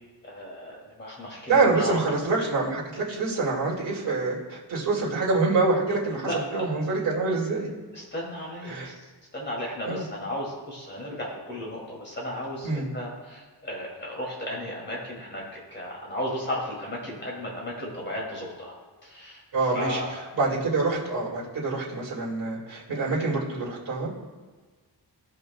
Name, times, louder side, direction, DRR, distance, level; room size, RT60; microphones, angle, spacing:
voice 1, 0.2-2.0 6.2-6.7 7.9-8.9 9.3-18.7 19.0-19.4 19.7-20.1, left 1 dB, 25° left, -4 dB, 2.7 m, -34 dB
voice 2, 1.5-7.7 8.6-8.9 9.9-10.0 12.6-12.9 19.5-20.0 20.3-24.1, right 3 dB, 55° right, -6 dB, 2.4 m, -26 dB
16.0 x 5.5 x 2.3 m, 1.4 s
wide cardioid pair, 165°, 41 cm